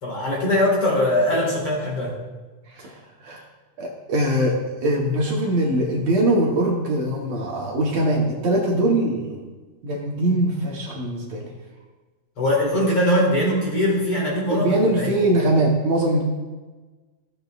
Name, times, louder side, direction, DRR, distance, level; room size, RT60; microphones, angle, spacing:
voice 1, 0.0-2.2 12.4-15.1, left 1 dB, 45° left, -3 dB, 2.5 m, -21 dB
voice 2, 2.7-3.4 3.8-4.5 4.8-9.4 9.8-11.5 14.5-16.2, right 1 dB, 65° right, -2 dB, 2.0 m, -22 dB
14.5 x 7.9 x 2.4 m, 1.3 s
omnidirectional pair, 3.7 m